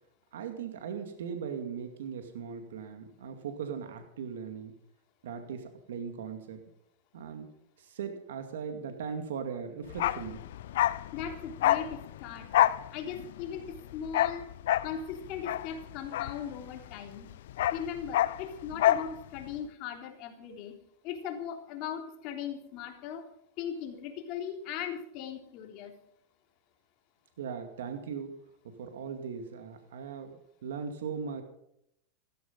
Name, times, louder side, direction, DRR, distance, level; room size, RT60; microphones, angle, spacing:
voice 1, 0.3-4.7 5.2-6.6 7.1-7.5 7.8-10.4 27.4-28.3 28.6-31.4, right 6 dB, 90° right, 6 dB, 2.3 m, -39 dB
Bark, 9.9-16.9 17.2-19.1 19.4-19.5, left 13 dB, 80° left, 0.7 m, -28 dB
voice 2, 11.1-12.5 12.9-14.5 14.8-17.3 17.7-20.7 21.0-23.3 23.6-25.9, left 8 dB, 50° left, 4 dB, 3.4 m, -39 dB
16.0 x 14.0 x 5.5 m, 0.75 s
supercardioid pair, 135°, 0 cm